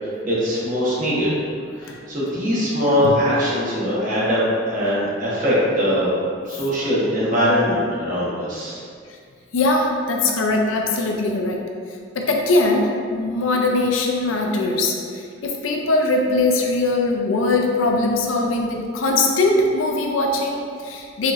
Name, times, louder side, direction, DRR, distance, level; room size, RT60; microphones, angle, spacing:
voice 1, 0.2-1.3 1.8-6.1 6.4-8.8, equal, 45° right, -7 dB, 1.0 m, -21 dB
voice 2, 9.5-11.6 12.1-21.3, left 2 dB, 85° left, 1 dB, 0.5 m, -21 dB
4.2 x 3.0 x 2.5 m, 2.2 s
head